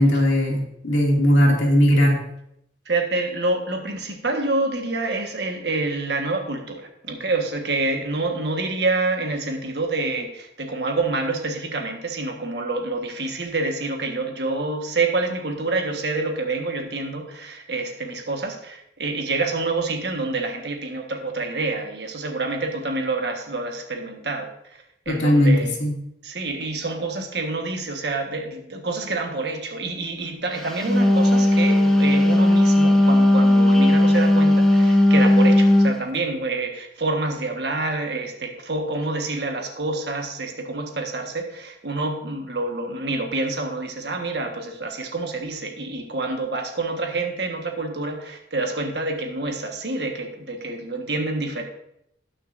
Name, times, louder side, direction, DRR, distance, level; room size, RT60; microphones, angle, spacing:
voice 1, 0.0-2.2 25.1-26.0, equal, 85° left, -1 dB, 2.4 m, -18 dB
voice 2, 2.9-25.8 26.2-51.6, right 3 dB, 65° right, 3 dB, 1.4 m, -27 dB
Wind instrument woodwind instrument, 30.7-36.0, left 1 dB, 5° left, 0.9 m, -16 dB
18.5 x 6.4 x 2.6 m, 0.77 s
head